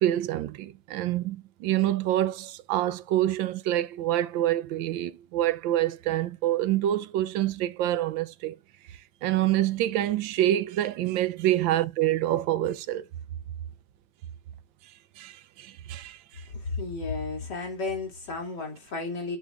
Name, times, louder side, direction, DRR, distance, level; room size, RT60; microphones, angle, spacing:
voice 1, 0.0-8.5 9.2-13.0 15.2-16.2, right 13 dB, 80° right, 1.3 m, -26 dB
voice 2, 16.8-19.4, left 3 dB, 55° left, 3.4 m, -33 dB
9.2 x 6.2 x 2.5 m
omnidirectional pair, 2.2 m